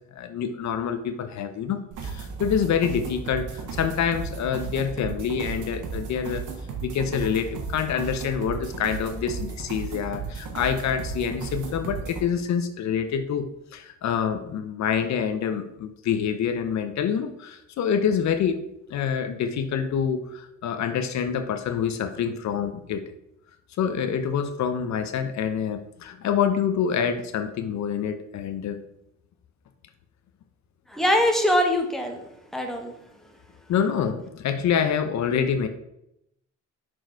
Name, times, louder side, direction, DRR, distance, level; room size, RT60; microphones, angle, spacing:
voice 1, 0.1-6.4 6.8-13.4 13.7-18.6 18.9-23.0 23.8-28.8 33.7-35.7, left 7 dB, 65° left, 9 dB, 0.7 m, -26 dB
sound 1, 1.9-12.2, right 5 dB, 80° right, 1.4 m, -35 dB
voice 2, 30.9-32.2 32.5-32.9, equal, ahead, 2 dB, 1.3 m, -22 dB
6.2 x 4.6 x 4.5 m, 0.81 s
cardioid pair, 90°, 30 cm